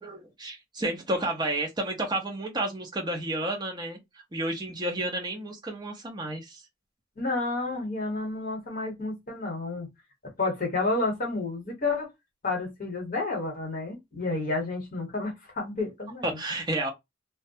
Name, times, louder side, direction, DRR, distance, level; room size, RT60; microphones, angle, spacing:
voice 1, 0.0-4.0 4.3-6.6 16.2-16.9, right 1 dB, 20° right, 0.7 m, -31 dB
voice 2, 7.2-9.9 10.4-12.1 12.4-16.4, left 3 dB, 45° left, 1.0 m, -30 dB
2.2 x 2.1 x 2.7 m
head